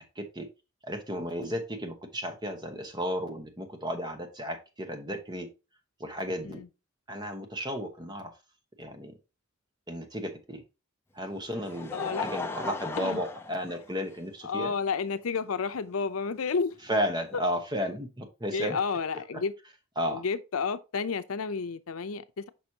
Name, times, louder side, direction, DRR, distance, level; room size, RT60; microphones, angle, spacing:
voice 1, 0.2-0.5 0.8-5.5 6.0-6.6 7.1-8.3 8.8-9.1 9.9-10.6 11.1-14.7 16.9-18.8 19.3-19.4 20.0-20.2, equal, 20° right, 1.0 m, -33 dB
Laughter, 11.2-14.4 15.3-15.4 16.8-16.9, left 3 dB, 10° left, 0.5 m, -38 dB
voice 2, 11.9-12.3 13.0-13.2 14.4-16.7 18.5-19.5 20.1-22.5, left 5 dB, 80° left, 0.6 m, -31 dB
6.2 x 5.9 x 2.8 m
head